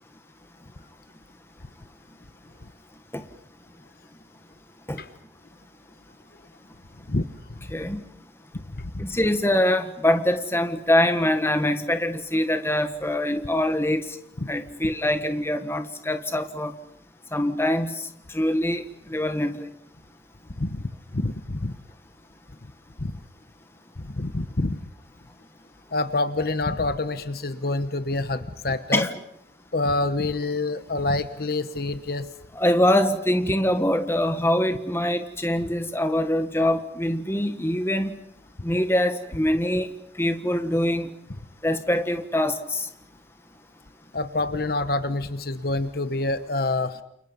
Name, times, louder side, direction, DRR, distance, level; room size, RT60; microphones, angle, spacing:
voice 1, 9.0-14.2 14.5-16.7 17.3-18.0 18.3-18.8 19.1-19.7 28.9-29.2 32.5-38.1 38.6-39.9 40.2-41.1 41.6-42.9, left 1 dB, 15° left, 8 dB, 1.6 m, -24 dB
voice 2, 21.1-21.7 23.0-23.2 24.1-24.8 25.9-29.1 29.7-32.3 44.1-47.0, left 2 dB, 55° left, 12 dB, 1.1 m, -27 dB
29.0 x 29.0 x 5.4 m, 0.72 s
head